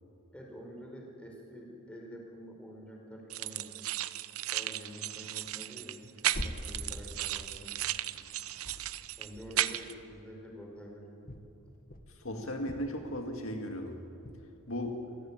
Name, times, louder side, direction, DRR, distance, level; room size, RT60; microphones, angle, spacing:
voice 1, 0.3-3.7 4.5-6.0 6.4-7.8 9.2-11.0, equal, 5° left, 0 dB, 5.0 m, -47 dB
sound 1, 3.3-9.9, right 13 dB, 70° right, 0.7 m, -35 dB
sound 2, 5.6-8.3 8.6-10.7 11.3-13.6 14.2-14.5, equal, 40° left, 1.8 m, -45 dB
voice 2, 12.1-14.0 14.7-14.9, equal, 65° left, 4 dB, 2.2 m, -36 dB
26.5 x 17.5 x 9.0 m, 2.8 s
head